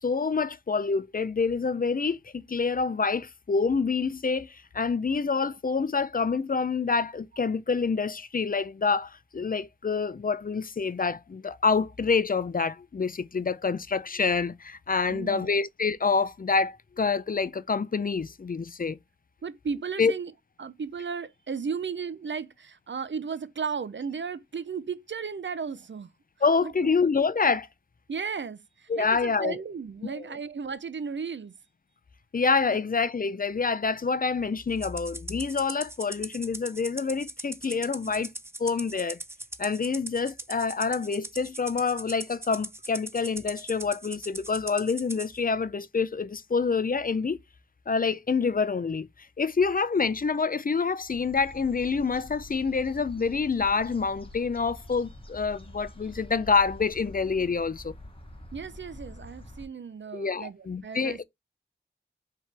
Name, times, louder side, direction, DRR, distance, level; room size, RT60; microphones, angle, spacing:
voice 1, 0.0-19.0 20.0-20.1 26.4-27.7 28.9-29.6 30.0-30.2 32.3-38.3 38.6-39.2 39.6-47.4 47.9-49.1 49.4-57.9 60.1-61.2, left 5 dB, 45° left, 0.4 m, -27 dB
voice 2, 15.1-15.6 19.4-20.3 20.6-26.1 26.6-26.9 28.1-31.5 38.1-38.3 58.5-61.2, right 5 dB, 65° right, 0.5 m, -35 dB
Rattle (instrument), 34.8-45.3, right 1 dB, 10° right, 0.5 m, -40 dB
sound 1, 51.1-59.7, left 1 dB, 25° left, 1.1 m, -46 dB
4.8 x 2.9 x 3.3 m
wide cardioid pair, 45°, 21 cm